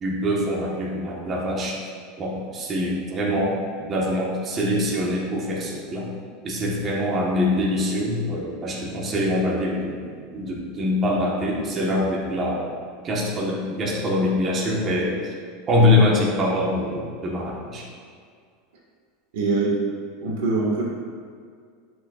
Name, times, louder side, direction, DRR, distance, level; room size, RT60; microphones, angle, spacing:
voice 1, 0.0-1.8 2.2-6.1 6.4-12.7 13.0-15.3 15.7-17.9, left 1 dB, 25° right, -4 dB, 1.2 m, -24 dB
voice 2, 19.3-19.8 20.2-20.8, right 3 dB, 75° right, -3 dB, 1.6 m, -23 dB
11.0 x 6.2 x 2.4 m, 2.1 s
supercardioid pair, 160°, 0 cm